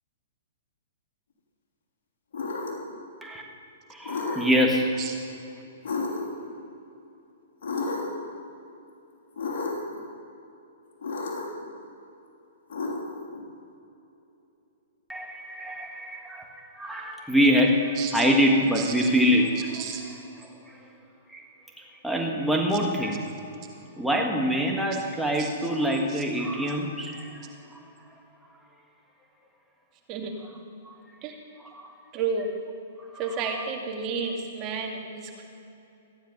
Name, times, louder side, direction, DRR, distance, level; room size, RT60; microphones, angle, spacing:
sound 1, 2.3-2.9 4.0-4.7 5.8-6.5 7.6-8.3 9.4-10.0 11.0-11.6 12.7-13.4, left 3 dB, 65° left, 3.3 m, -32 dB
voice 1, 3.9-5.0 15.1-19.9 20.4-20.8 21.3-21.4 21.8-23.3 24.0-27.8 30.8-30.9 31.7-31.9 33.1-33.6, equal, ahead, -1 dB, 1.5 m, -25 dB
voice 2, 18.8-19.1 19.7-20.0 25.4-25.5 26.1-26.2 30.1-30.3 31.2-31.3 32.1-32.5 33.2-35.4, right 5 dB, 35° right, 3 dB, 2.1 m, -32 dB
15.0 x 10.0 x 5.9 m, 2.8 s
hypercardioid pair, 130°, 0 cm